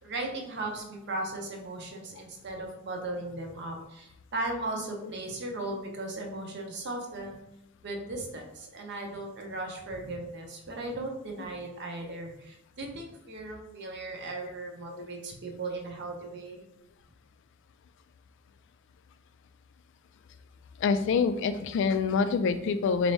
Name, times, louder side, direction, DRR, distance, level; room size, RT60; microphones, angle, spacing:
voice 1, 0.0-7.4 7.8-16.6, right 2 dB, 55° right, 2 dB, 0.7 m, -37 dB
voice 2, 20.8-23.1, left 5 dB, 60° left, 11 dB, 0.3 m, -26 dB
4.2 x 2.6 x 3.2 m, 0.87 s
head